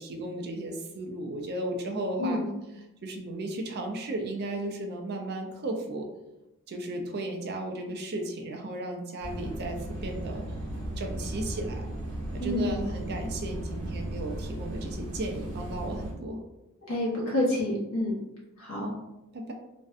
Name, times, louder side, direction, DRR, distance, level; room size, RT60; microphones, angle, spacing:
voice 1, 0.0-2.4 3.0-6.1 6.7-10.4 11.0-11.9 12.3-16.4 19.3-19.5, right 1 dB, 50° right, 3 dB, 0.4 m, -35 dB
sound 1, 9.2-16.1, right 1 dB, 75° right, 0.8 m, -36 dB
voice 2, 12.4-12.8 16.9-18.1 18.6-18.9, left 1 dB, 70° left, -5 dB, 0.8 m, -28 dB
2.5 x 2.1 x 2.4 m, 0.94 s
head